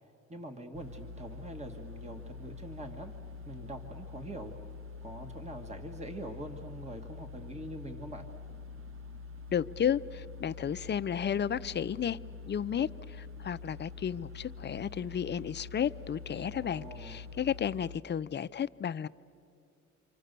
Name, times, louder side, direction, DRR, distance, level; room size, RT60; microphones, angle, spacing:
voice 1, 0.3-3.1 3.4-4.6 5.0-8.3 16.4-17.3, right 1 dB, 20° right, 1.6 m, -44 dB
sound 1, 0.7-18.0, left 4 dB, 45° right, 1.1 m, -46 dB
voice 2, 9.5-12.2 12.5-19.1, left 8 dB, 35° left, 0.5 m, -33 dB
29.0 x 25.5 x 6.8 m
cardioid pair, 90°, 30 cm